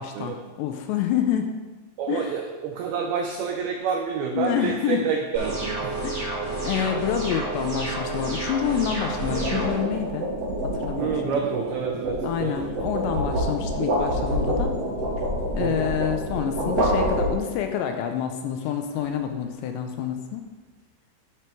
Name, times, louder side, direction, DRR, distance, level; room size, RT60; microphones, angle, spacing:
voice 1, 0.0-1.5 2.1-2.3 4.3-5.0 6.0-6.1 6.6-10.3 10.6-11.4 12.2-14.7 15.5-20.4, left 9 dB, 80° left, 6 dB, 2.7 m, -28 dB
voice 2, 2.0-6.0 11.0-12.7 15.6-15.9, right 6 dB, 90° right, 2 dB, 2.1 m, -28 dB
sound 1, 3.4-3.7 8.9-17.8, equal, 45° right, 2.3 m, -27 dB
sound 2, 5.3-9.7, right 2 dB, 25° right, 3.4 m, -30 dB
11.0 x 5.2 x 4.5 m, 1.2 s
omnidirectional pair, 5.3 m